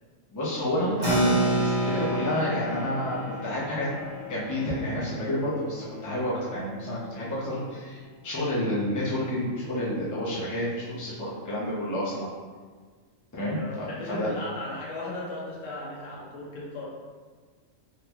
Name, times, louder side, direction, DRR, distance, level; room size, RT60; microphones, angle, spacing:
voice 1, 0.3-3.9 4.3-12.3 13.3-14.3, left 1 dB, 20° left, -8 dB, 0.6 m, -30 dB
Bowed string instrument, 0.9-7.7, left 3 dB, 55° left, 0.7 m, -45 dB
Keyboard (musical), 1.0-7.0, right 1 dB, 65° right, 1.5 m, -30 dB
voice 2, 13.4-17.0, left 2 dB, 75° left, -5 dB, 1.2 m, -37 dB
3.8 x 2.3 x 2.9 m, 1.5 s
omnidirectional pair, 1.3 m